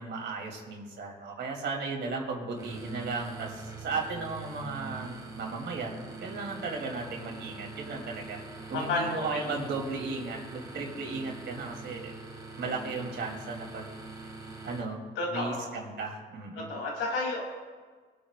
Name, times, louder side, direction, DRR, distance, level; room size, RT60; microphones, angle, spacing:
voice 1, 0.0-8.4 8.7-12.2 12.6-14.0 14.6-15.0 15.3-16.7, right 3 dB, 65° right, -1 dB, 3.2 m, -35 dB
sound 1, 2.6-14.8, right 3 dB, 20° right, 2.4 m, -44 dB
voice 2, 8.9-9.5 15.2-15.8 16.5-17.4, left 2 dB, 90° left, -1 dB, 3.3 m, -31 dB
24.5 x 8.7 x 2.5 m, 1.5 s
cardioid pair, 90°, 20 cm